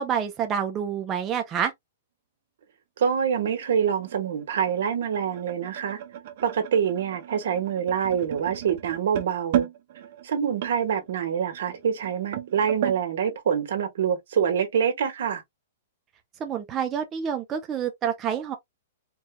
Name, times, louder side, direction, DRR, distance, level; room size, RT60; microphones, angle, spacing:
voice 1, 0.0-1.7 16.4-18.5, right 8 dB, 15° right, 0.5 m, -28 dB
voice 2, 3.0-6.0 6.4-9.7 10.2-15.4, right 7 dB, 65° right, 1.5 m, -26 dB
sound 1, 3.3-13.0, right 11 dB, 45° right, 0.8 m, -34 dB
4.5 x 2.3 x 3.0 m
hypercardioid pair, 170°, 0 cm